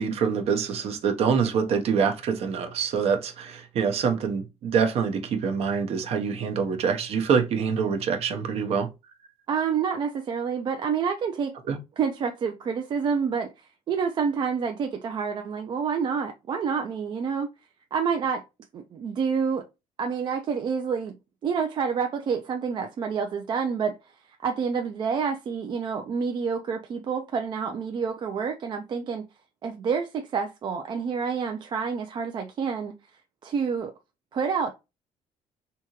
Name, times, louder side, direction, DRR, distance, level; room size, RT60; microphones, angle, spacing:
voice 1, 0.0-8.9 11.7-11.8, right 6 dB, 55° right, 0.8 m, -25 dB
voice 2, 9.5-11.6 12.0-17.5 17.9-18.4 18.7-19.7 20.0-21.2 21.4-24.0 24.4-29.2 29.6-32.9 33.4-33.9 34.3-34.7, right 6 dB, 40° right, 0.4 m, -28 dB
3.4 x 2.8 x 2.9 m
cardioid pair, 155°, 13 cm